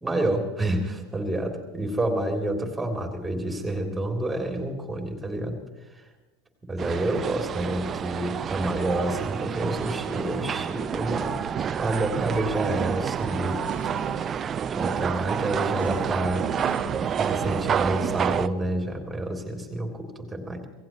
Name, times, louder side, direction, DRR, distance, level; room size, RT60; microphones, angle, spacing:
voice 1, 0.0-6.1 6.7-11.3 11.7-13.9 14.7-16.5 17.2-20.6, right 1 dB, 5° right, 2 dB, 3.3 m, -29 dB
sound 1, 6.8-18.5, right 8 dB, 30° right, 0.5 m, -28 dB
Female speech woman speaking, 13.6-14.3 15.7-18.0, right 3 dB, 85° left, 4.4 m, -40 dB
26.5 x 17.5 x 3.1 m, 1.1 s
figure-of-eight pair, 80°, 0 cm